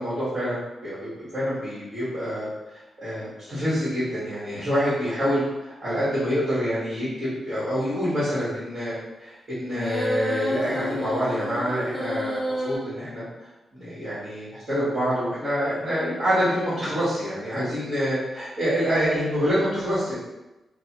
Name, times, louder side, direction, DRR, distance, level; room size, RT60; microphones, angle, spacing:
voice 1, 0.0-2.5 2.7-8.9 9.2-13.2 13.7-20.2, equal, 40° right, -14 dB, 1.3 m, -26 dB
sound 1, 9.7-12.8, equal, 10° left, 0.4 m, -29 dB
3.1 x 2.0 x 2.9 m, 1.0 s
wide cardioid pair, 155°, 0 cm